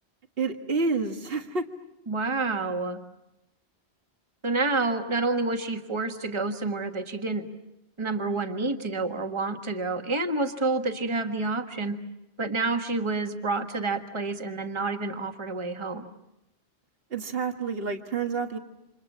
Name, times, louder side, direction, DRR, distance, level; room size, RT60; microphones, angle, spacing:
voice 1, 0.4-1.6 17.1-18.6, right 4 dB, 60° right, 6 dB, 1.8 m, -28 dB
voice 2, 2.1-3.0 4.4-7.5 8.0-12.0 12.4-16.1, right 3 dB, 25° right, 5 dB, 1.5 m, -28 dB
30.0 x 27.0 x 7.4 m, 0.91 s
omnidirectional pair, 1.1 m